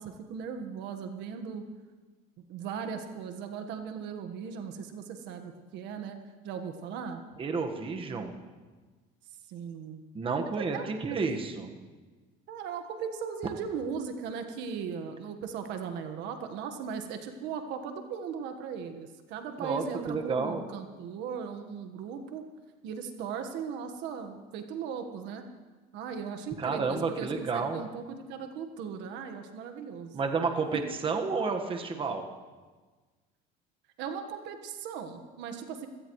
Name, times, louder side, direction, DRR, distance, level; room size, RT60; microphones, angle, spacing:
voice 1, 0.0-1.6 2.5-6.2 6.4-7.2 9.5-10.0 10.6-10.9 12.5-22.4 22.8-25.4 25.9-30.2 34.0-35.9, right 6 dB, 70° right, 6 dB, 1.5 m, -38 dB
voice 2, 7.4-8.4 10.1-11.7 19.6-20.6 26.6-27.8 30.1-32.3, right 4 dB, 30° right, 4 dB, 1.5 m, -31 dB
24.5 x 17.0 x 3.2 m, 1.4 s
cardioid pair, 125°, 19 cm